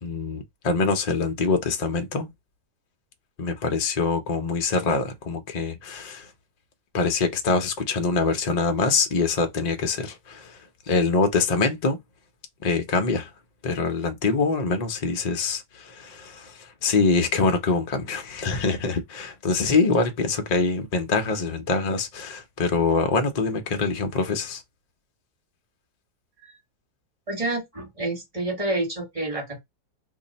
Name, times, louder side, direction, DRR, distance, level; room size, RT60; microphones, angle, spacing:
voice 1, 0.0-2.3 3.4-6.3 6.9-10.6 10.9-12.0 12.6-13.3 13.6-24.6, left 4 dB, 60° left, 0.4 m, -24 dB
voice 2, 27.3-29.6, right 2 dB, 25° right, 1.2 m, -28 dB
2.7 x 2.7 x 4.0 m
omnidirectional pair, 1.7 m